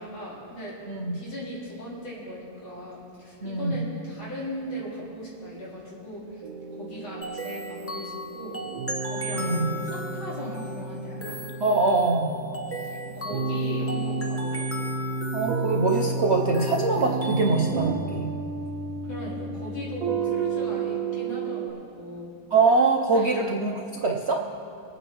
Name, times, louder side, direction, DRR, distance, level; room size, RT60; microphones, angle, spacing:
voice 1, 0.0-0.7 1.1-6.4 6.7-8.6 9.0-11.4 12.7-14.8 19.1-22.3 23.1-23.4, equal, 85° left, -8 dB, 4.7 m, -38 dB
voice 2, 0.9-1.2 3.4-3.8 9.3-9.7 11.6-12.3 15.3-18.3 22.5-24.4, right 3 dB, 60° right, 0 dB, 0.7 m, -23 dB
sound 1, 6.4-21.7, right 3 dB, 80° right, 1.6 m, -31 dB
sound 2, 7.2-17.9, equal, 10° left, 0.6 m, -38 dB
26.5 x 9.2 x 3.1 m, 2.6 s
omnidirectional pair, 2.1 m